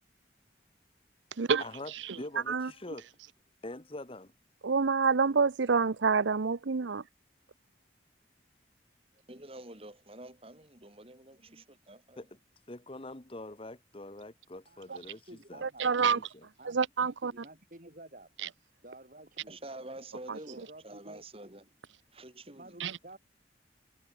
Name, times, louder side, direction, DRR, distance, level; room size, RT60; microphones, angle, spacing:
voice 1, 1.6-3.1 3.6-4.3 12.2-12.3 12.7-15.6 16.0-16.5, left 2 dB, 30° left, 1.1 m, -44 dB
voice 2, 4.6-7.0 15.6-16.2 16.6-17.3 18.4-18.5 20.3-20.4 22.8-23.0, right 5 dB, 90° right, 0.7 m, -27 dB
voice 3, 9.3-12.3 19.5-21.7 22.1-22.8, right 1 dB, 30° right, 3.4 m, -47 dB
voice 4, 14.7-15.9 16.6-16.8 17.2-18.3 18.8-19.6 20.5-21.2 22.5-23.2, right 1 dB, 45° right, 4.3 m, -51 dB
head